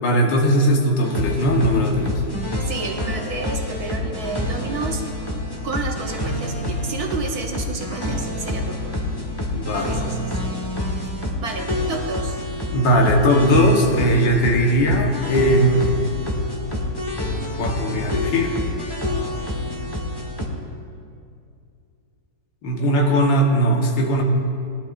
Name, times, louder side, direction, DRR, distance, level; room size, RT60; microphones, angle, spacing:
voice 1, 0.0-2.2 9.5-10.1 12.7-16.1 17.6-18.6 22.6-24.2, equal, 65° left, 1 dB, 1.9 m, -19 dB
sound 1, 1.0-20.5, left 1 dB, 15° left, 0.9 m, -27 dB
voice 2, 2.6-5.0 5.6-9.0 9.8-10.5 11.4-12.4, right 3 dB, 55° right, 2 dB, 1.2 m, -31 dB
19.5 x 11.5 x 2.5 m, 2.4 s
omnidirectional pair, 2.2 m